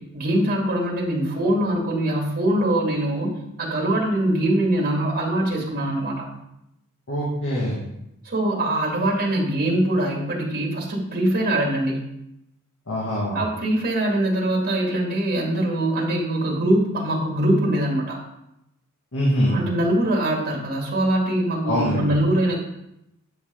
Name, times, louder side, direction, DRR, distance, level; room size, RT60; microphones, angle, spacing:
voice 1, 0.1-3.3 3.6-6.3 8.2-12.0 13.3-18.2 19.5-22.6, right 1 dB, 40° right, -3 dB, 2.3 m, -23 dB
voice 2, 7.1-7.9 12.9-13.4 19.1-19.7 21.6-22.1, equal, 60° left, -6 dB, 2.1 m, -23 dB
9.9 x 6.6 x 3.9 m, 0.83 s
head